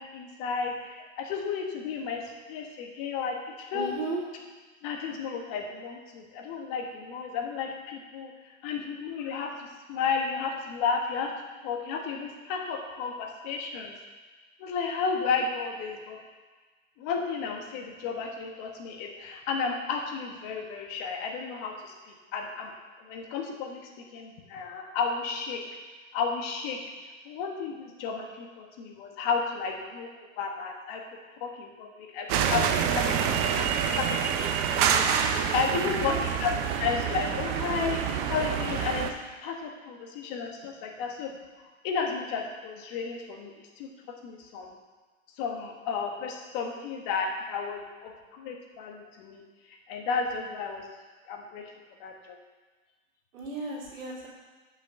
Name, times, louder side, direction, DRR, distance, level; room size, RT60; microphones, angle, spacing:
voice 1, 0.0-3.9 4.8-8.3 8.6-9.5 9.9-11.3 11.6-13.9 14.6-16.2 17.0-22.7 23.0-25.6 26.1-26.8 27.2-31.0 31.4-33.7 34.0-34.2 34.4-36.5 36.8-39.1 39.4-41.3 41.8-43.9 44.2-44.7 45.4-49.4 49.9-50.8 51.3-51.6 52.0-52.3, left 5 dB, 45° left, 2 dB, 1.5 m, -33 dB
voice 2, 3.7-4.2 35.8-36.2 53.3-54.3, right 3 dB, 75° right, -4 dB, 3.1 m, -35 dB
sound 1, 32.3-39.1, right 8 dB, 45° right, 0.8 m, -27 dB
6.4 x 5.8 x 6.9 m, 1.3 s
hypercardioid pair, 120°, 40 cm